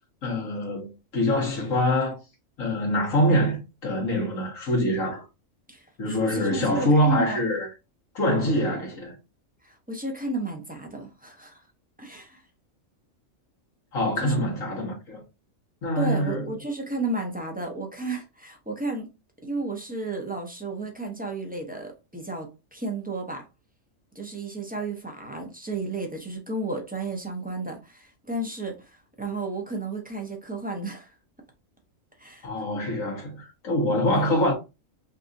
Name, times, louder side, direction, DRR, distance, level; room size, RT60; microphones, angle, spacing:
voice 1, 0.2-2.2 2.6-5.3 6.0-7.7 8.1-9.1 13.9-15.2 15.8-16.5 32.4-34.5, left 1 dB, 80° left, 1.7 m, -24 dB
voice 2, 5.7-7.4 9.6-11.6 12.0-12.4 14.2-14.3 16.0-19.1 19.4-23.4 24.1-31.1 32.2-32.5 34.1-34.3, right 2 dB, 10° right, 0.7 m, -33 dB
5.4 x 2.5 x 2.6 m
omnidirectional pair, 1.4 m